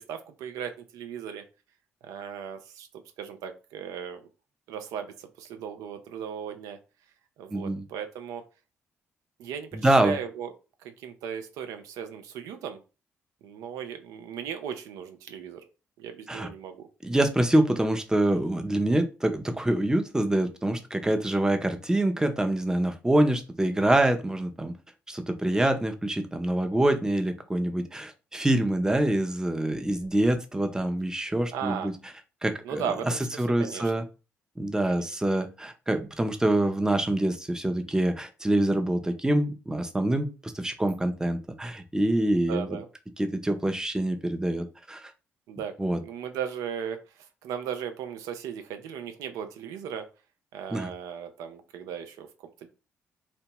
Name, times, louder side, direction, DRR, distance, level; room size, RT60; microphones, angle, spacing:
voice 1, 0.0-1.4 2.0-2.9 3.2-4.2 4.7-6.8 7.4-8.4 9.4-10.5 10.8-12.8 13.4-15.6 16.0-16.9 25.5-25.8 31.5-31.9 32.6-33.9 34.9-35.1 35.4-35.5 42.3-42.9 45.5-45.7 46.0-50.1 50.5-52.7, right 8 dB, 75° right, 7 dB, 0.4 m, -37 dB
voice 2, 7.5-7.8 9.7-10.2 16.3-16.5 17.0-24.7 25.1-31.9 32.4-33.1 33.4-34.0 34.6-42.8 43.2-45.1 45.8-46.0 50.7-50.9, right 1 dB, 10° right, 7 dB, 0.6 m, -25 dB
2.8 x 2.1 x 2.9 m, 0.31 s
hypercardioid pair, 50°, 6 cm